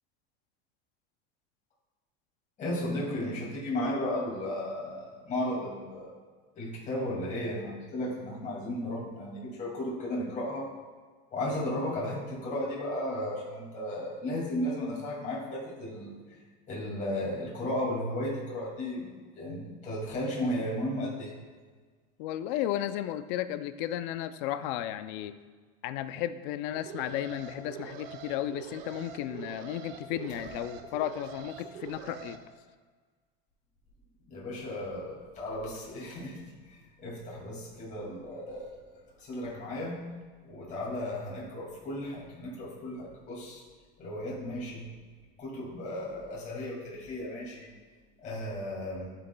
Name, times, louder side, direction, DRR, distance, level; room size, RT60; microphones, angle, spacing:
voice 1, 2.6-6.1 6.6-10.7 11.3-16.4 16.7-19.1 19.3-21.4 34.3-40.0 40.4-43.6 44.0-44.9 45.4-47.7 48.2-49.1, left 1 dB, 25° left, -5 dB, 2.3 m, -35 dB
voice 2, 22.2-25.4 25.8-32.4, left 12 dB, 60° left, 12 dB, 0.5 m, -34 dB
Alarm, 26.7-32.4, right 7 dB, 90° right, 0.9 m, -44 dB
12.0 x 6.7 x 2.3 m, 1.5 s
supercardioid pair, 150°, 29 cm